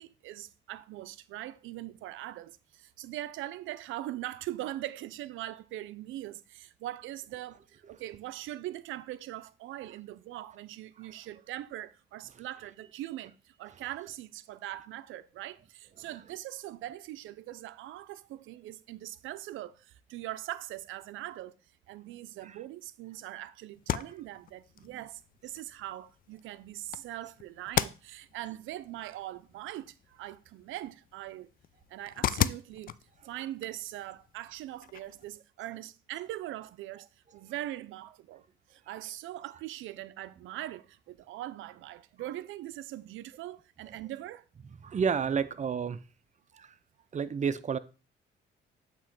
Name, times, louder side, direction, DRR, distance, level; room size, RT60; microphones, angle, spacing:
voice 1, 0.0-21.5 21.9-31.5 31.9-32.9 33.2-37.1 37.3-38.4 38.7-44.5, right 14 dB, 85° right, 0.5 m, -41 dB
sound 1, 23.7-35.4, left 10 dB, 45° left, 0.4 m, -38 dB
voice 2, 44.8-46.0 46.5-46.7 47.1-47.8, right 6 dB, 35° right, 0.6 m, -31 dB
8.5 x 3.0 x 5.8 m
cardioid pair, 90°, 20 cm